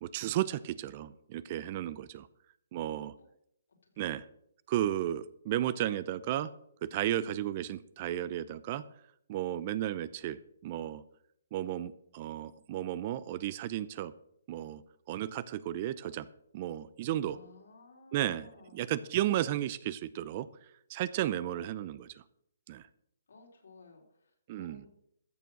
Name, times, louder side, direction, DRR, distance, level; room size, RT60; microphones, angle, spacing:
voice 1, 0.0-2.3 2.7-3.1 4.0-4.3 4.7-6.5 6.8-8.8 9.3-11.0 11.5-14.1 14.5-14.8 15.1-16.3 16.5-17.4 18.1-20.5 20.9-22.2 22.7-22.8 24.5-24.8, right 12 dB, 40° right, 17 dB, 0.6 m, -34 dB
voice 2, 3.8-4.2 17.2-18.8 23.3-24.9, left 3 dB, 75° left, 1 dB, 3.9 m, -57 dB
14.0 x 6.9 x 6.2 m, 0.73 s
hypercardioid pair, 140°, 0 cm